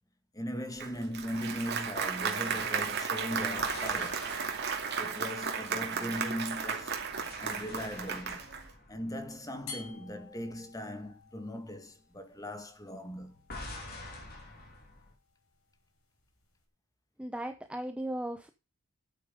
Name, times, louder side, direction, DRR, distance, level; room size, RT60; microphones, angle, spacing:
voice 1, 0.3-4.3 5.0-7.0 7.4-8.5 8.9-13.3, equal, 15° left, 2.0 m, -39 dB
Applause, 0.8-8.7, right 6 dB, 50° right, 2.6 m, -34 dB
sound 1, 3.6-6.3 6.8-10.2 10.5-10.8 13.5-15.1, left 2 dB, 45° left, 4.3 m, -47 dB
sound 2, 9.7-16.7, left 5 dB, 80° left, 6.8 m, -53 dB
voice 2, 17.2-18.5, right 1 dB, 5° right, 0.7 m, -36 dB
12.0 x 8.4 x 5.2 m
head